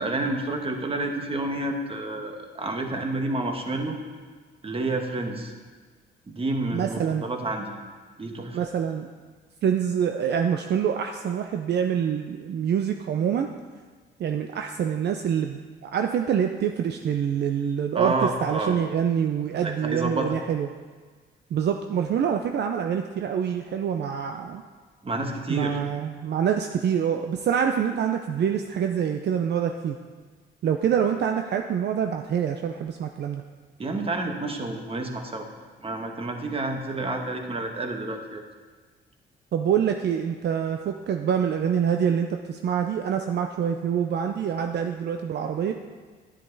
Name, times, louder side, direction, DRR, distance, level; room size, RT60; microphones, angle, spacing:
voice 1, 0.0-4.0 4.6-5.5 6.3-7.7 8.2-8.6 17.9-18.8 19.6-20.3 25.0-25.8 33.8-35.5 35.8-38.4, right 2 dB, 30° right, 4 dB, 1.4 m, -29 dB
voice 2, 6.7-7.2 8.5-9.1 9.6-13.5 14.2-20.7 21.5-24.6 25.5-30.0 30.6-33.4 39.5-45.7, right 8 dB, 60° right, 5 dB, 0.6 m, -26 dB
10.0 x 9.8 x 4.0 m, 1.5 s
cardioid pair, 90°, 20 cm